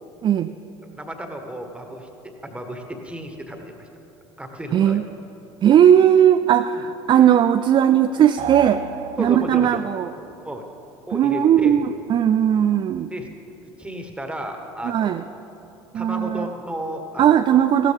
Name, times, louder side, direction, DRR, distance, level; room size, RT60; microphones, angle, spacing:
voice 1, 0.2-0.5 4.7-5.0 5.6-8.8 9.2-10.1 11.1-13.1 14.8-15.2 15.9-16.5 17.2-17.9, right 9 dB, 35° right, 11 dB, 0.4 m, -17 dB
voice 2, 1.0-3.9 4.4-5.0 9.2-9.8 10.4-10.7 11.1-11.8 13.1-13.3 13.8-15.4 15.9-17.6, right 1 dB, 10° right, 4 dB, 1.7 m, -33 dB
sound 1, 8.4-9.9, right 7 dB, 50° right, 0.8 m, -33 dB
15.5 x 13.0 x 3.6 m, 3.0 s
hypercardioid pair, 65°, 15 cm